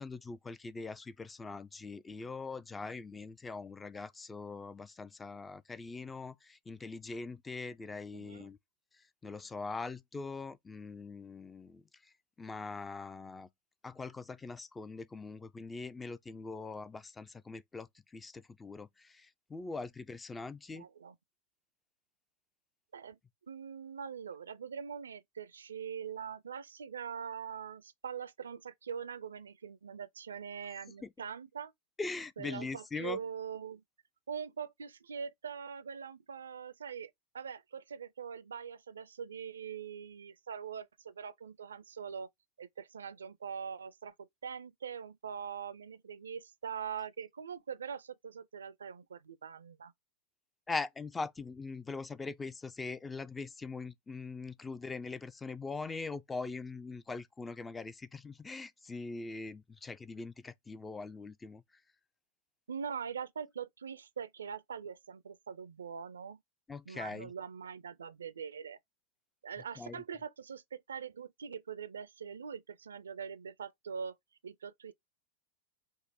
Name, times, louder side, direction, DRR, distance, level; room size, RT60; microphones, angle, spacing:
voice 1, 0.0-8.6 8.9-13.5 13.8-20.9 31.0-31.1 32.0-33.2 50.7-61.6 66.7-67.3 69.8-70.0, left 3 dB, 15° left, 0.3 m, -42 dB
voice 2, 8.1-8.5 20.7-21.2 22.9-23.2 23.5-31.7 32.4-33.8 34.3-42.3 42.6-49.9 62.7-66.4 66.9-68.8 69.4-74.2 74.4-74.9, right 7 dB, 70° right, 0.4 m, -43 dB
5.3 x 2.0 x 4.0 m
figure-of-eight pair, 90°, 0 cm